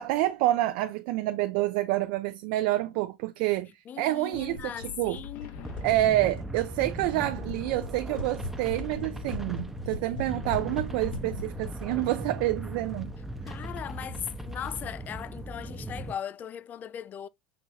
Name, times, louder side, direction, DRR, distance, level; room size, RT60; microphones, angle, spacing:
voice 1, 0.0-3.7 4.0-5.2 5.8-13.1, right 16 dB, 70° right, 0.4 m, -28 dB
voice 2, 3.9-5.6 13.5-17.3, left 9 dB, 35° left, 0.4 m, -38 dB
sound 1, 4.3-7.8, left 9 dB, 60° left, 0.9 m, -48 dB
sound 2, 4.6-13.2, left 2 dB, 90° left, 1.1 m, -41 dB
sound 3, 5.6-16.1, right 1 dB, 5° right, 0.7 m, -38 dB
5.9 x 2.7 x 3.0 m
supercardioid pair, 95°, 5 cm